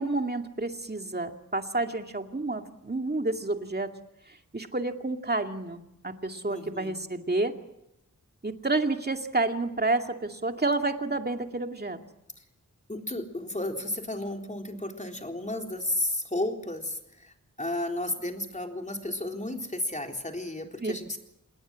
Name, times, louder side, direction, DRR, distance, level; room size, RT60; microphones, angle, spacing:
voice 1, 0.0-3.9 4.5-7.5 8.4-12.0 20.8-20.9, right 2 dB, 30° right, 5 dB, 2.4 m, -29 dB
voice 2, 6.4-7.0 12.4-12.5 12.9-21.2, left 1 dB, 25° left, 3 dB, 3.9 m, -33 dB
27.5 x 21.0 x 7.6 m, 0.81 s
wide cardioid pair, 85°, 32 cm